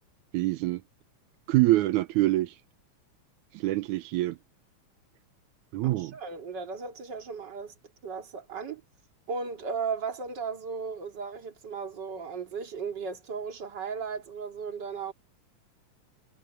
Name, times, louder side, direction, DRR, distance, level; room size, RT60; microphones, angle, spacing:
voice 1, 0.3-0.8 1.5-2.6 3.5-4.4 5.7-6.1, right 17 dB, 85° right, 2.1 m, -25 dB
voice 2, 5.8-7.7 8.0-8.8 9.3-15.1, right 5 dB, 35° right, 2.9 m, -36 dB
omnidirectional pair, 3.4 m